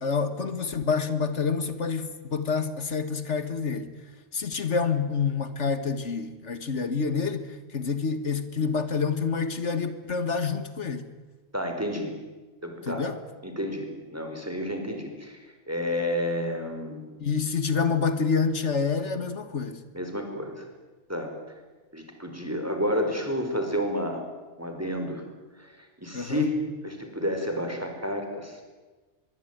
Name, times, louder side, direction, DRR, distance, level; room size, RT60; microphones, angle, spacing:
voice 1, 0.0-3.9 4.3-7.5 7.7-11.1 12.9-13.2 17.2-19.8 26.1-26.5, left 5 dB, 80° left, 11 dB, 2.0 m, -27 dB
voice 2, 11.5-12.1 12.6-13.1 13.4-17.1 19.9-20.7 21.1-21.3 21.9-24.2 24.6-25.2 25.6-28.6, equal, 10° right, 4 dB, 5.0 m, -30 dB
25.0 x 22.5 x 9.3 m, 1.3 s
omnidirectional pair, 1.2 m